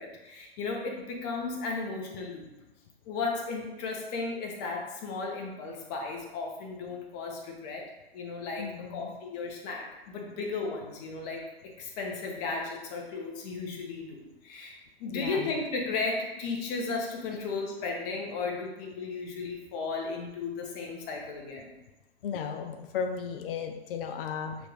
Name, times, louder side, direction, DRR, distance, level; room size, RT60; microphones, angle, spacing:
voice 1, 0.0-2.5 3.1-7.8 8.1-21.7, left 3 dB, 40° left, 0 dB, 1.1 m, -35 dB
voice 2, 8.6-9.1 15.1-15.6 22.2-24.6, left 6 dB, 60° left, 5 dB, 0.5 m, -35 dB
6.5 x 2.5 x 3.2 m, 0.99 s
hypercardioid pair, 125°, 32 cm